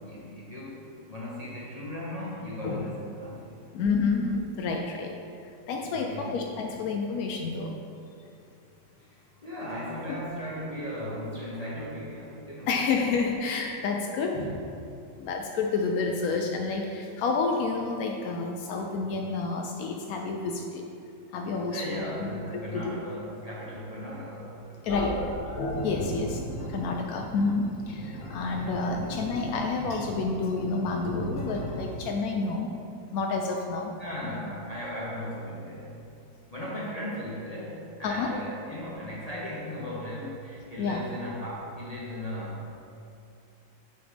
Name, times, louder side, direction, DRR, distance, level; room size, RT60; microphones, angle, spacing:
voice 1, 0.0-3.6 5.8-6.4 9.0-9.1 9.4-12.7 14.3-14.5 21.7-25.3 34.0-35.9 36.5-42.7, equal, 35° left, -7 dB, 0.6 m, -37 dB
voice 2, 3.7-5.2 5.7-7.7 12.7-14.4 15.2-20.9 21.3-22.3 22.7-22.9 24.8-25.2 25.8-26.4 26.7-32.7 33.1-33.9 38.0-38.3 40.8-41.0, left 4 dB, 80° left, 2 dB, 0.8 m, -29 dB
sound 1, 24.9-31.8, equal, 55° left, 1.3 m, -36 dB
7.8 x 3.4 x 5.1 m, 2.6 s
omnidirectional pair, 2.1 m